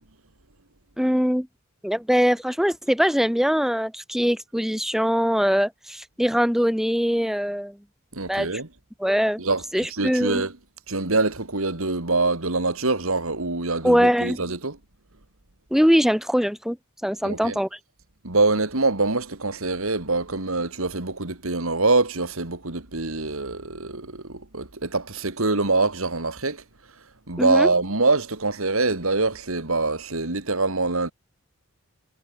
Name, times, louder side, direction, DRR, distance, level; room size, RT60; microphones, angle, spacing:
voice 1, 1.0-1.5 1.8-7.8 8.3-8.5 9.0-9.4 9.7-10.4 13.8-14.4 15.7-16.8 17.0-17.8 27.4-27.7, equal, ahead, 2.5 m, -22 dB
voice 2, 8.1-8.7 9.4-10.5 10.9-14.8 17.2-17.6 18.2-26.6 27.3-31.1, right 3 dB, 75° right, 2.5 m, -24 dB
head